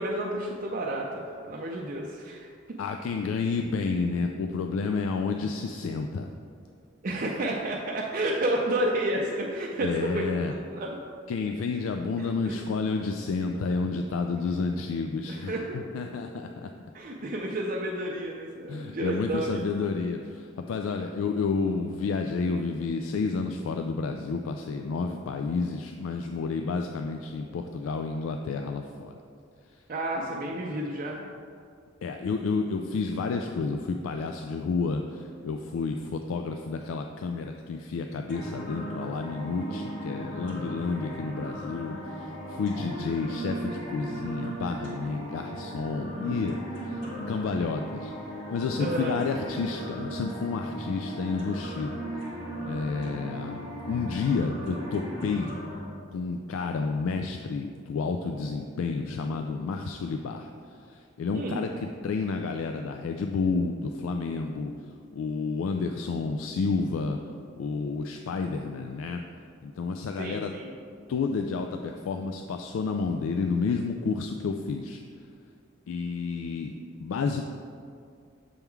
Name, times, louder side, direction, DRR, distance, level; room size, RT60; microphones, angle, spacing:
voice 1, 0.0-2.5 7.0-10.3 10.7-10.9 12.2-12.6 15.3-15.9 16.9-19.5 29.9-31.3 46.1-46.2 48.8-49.1 61.3-61.7 70.2-70.7, right 1 dB, 45° right, -1 dB, 0.4 m, -31 dB
voice 2, 2.8-6.3 9.8-10.5 11.3-16.7 18.7-29.1 30.7-30.8 32.0-47.0 47.3-48.1 48.5-52.0 52.7-53.6 53.9-55.5 56.1-60.5 60.9-64.7 65.1-67.2 67.6-69.2 69.6-70.5 71.1-75.0 75.9-76.7 77.0-77.5, left 4 dB, 90° left, 4 dB, 0.3 m, -30 dB
sound 1, 38.3-55.8, right 1 dB, 65° left, 1.4 m, -37 dB
6.9 x 3.6 x 4.6 m, 2.3 s
head